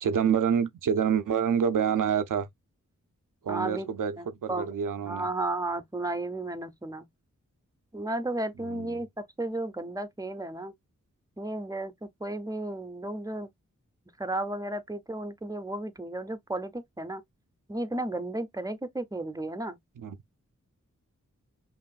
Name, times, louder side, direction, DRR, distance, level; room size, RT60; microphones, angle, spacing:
voice 1, 0.0-2.5 3.4-5.3 8.6-9.0 20.0-20.2, right 7 dB, 90° right, 0.6 m, -27 dB
voice 2, 3.5-3.9 4.2-4.7 5.1-7.1 7.9-10.7 11.4-13.5 14.2-17.2 17.7-19.8, right 2 dB, 10° right, 0.7 m, -33 dB
5.6 x 2.5 x 2.3 m
cardioid pair, 50°, 31 cm